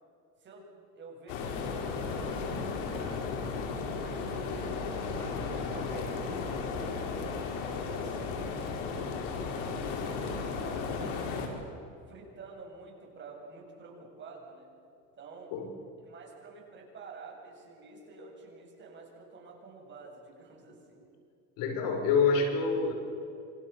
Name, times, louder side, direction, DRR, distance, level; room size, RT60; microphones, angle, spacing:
voice 1, 0.4-3.3 4.0-9.2 9.6-11.5 12.1-14.7 15.1-15.6 16.0-21.0, right 3 dB, 30° right, 0 dB, 7.7 m, -49 dB
sound 1, 1.3-11.5, left 4 dB, 85° left, 5.2 m, -34 dB
voice 2, 21.6-22.9, left 5 dB, 65° left, 3 dB, 5.9 m, -26 dB
28.0 x 25.0 x 7.1 m, 2.5 s
cardioid pair, 135°, 36 cm